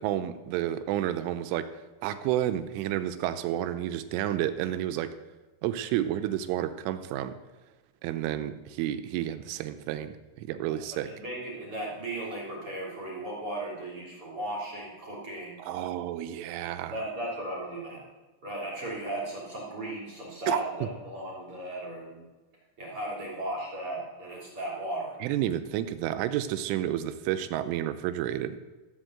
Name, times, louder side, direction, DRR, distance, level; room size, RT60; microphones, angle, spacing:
voice 1, 0.0-1.7 2.0-5.1 5.6-7.4 8.0-11.1 15.6-16.9 20.5-20.6 25.2-28.6, right 12 dB, 85° right, 11 dB, 3.1 m, -30 dB
voice 2, 10.7-15.6 16.9-18.0 18.4-22.2 22.8-25.2, right 1 dB, 35° right, -3 dB, 3.2 m, -36 dB
14.0 x 8.1 x 7.8 m, 1.2 s
omnidirectional pair, 5.8 m